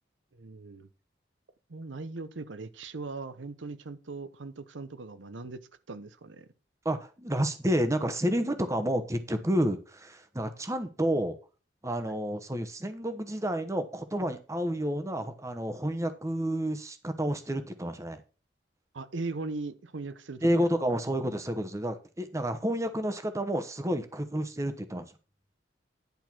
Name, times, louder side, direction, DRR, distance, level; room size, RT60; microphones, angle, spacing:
voice 1, 0.3-0.9 1.7-5.6 5.9-6.5 12.1-12.2 18.9-20.6, right 3 dB, 85° right, 0.8 m, -39 dB
voice 2, 6.8-11.4 11.8-18.2 20.4-25.0, equal, 15° right, 1.0 m, -30 dB
10.5 x 4.4 x 6.0 m
head